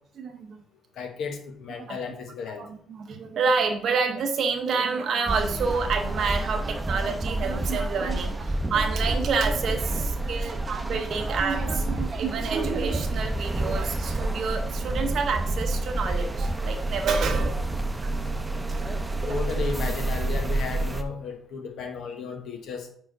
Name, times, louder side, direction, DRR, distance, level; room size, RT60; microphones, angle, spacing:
voice 1, 0.2-0.6 1.8-2.0 2.6-17.6 18.0-19.4, right 5 dB, 65° right, 4 dB, 0.7 m, -28 dB
voice 2, 1.0-2.6 19.2-22.9, left 5 dB, 80° left, 4 dB, 1.1 m, -34 dB
sound 1, 5.3-21.0, right 2 dB, 15° right, 0.7 m, -29 dB
4.8 x 4.6 x 5.1 m, 0.63 s
cardioid pair, 90°, 0 cm